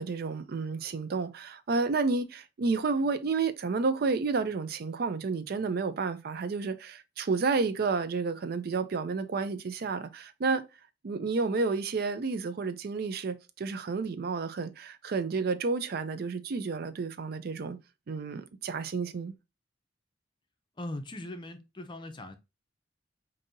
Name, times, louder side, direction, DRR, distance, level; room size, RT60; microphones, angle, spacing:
voice 1, 0.0-10.7 11.0-17.8 18.1-19.3, right 4 dB, 55° right, 0.4 m, -31 dB
voice 2, 20.8-22.3, left 1 dB, 25° left, 0.5 m, -40 dB
5.2 x 2.7 x 2.6 m
head